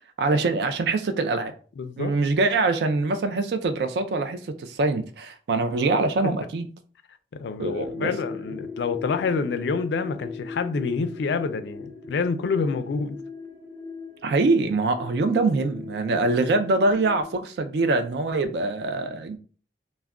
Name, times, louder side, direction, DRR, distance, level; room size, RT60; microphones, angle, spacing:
voice 1, 0.2-1.5 2.0-6.7 7.6-8.1 14.2-19.4, right 3 dB, 70° right, 0.3 m, -24 dB
voice 2, 1.8-2.2 6.2-6.4 7.3-13.2, left 4 dB, 85° left, 0.4 m, -27 dB
sound 1, 7.8-17.3, left 4 dB, 10° right, 0.5 m, -39 dB
2.3 x 2.1 x 3.4 m
head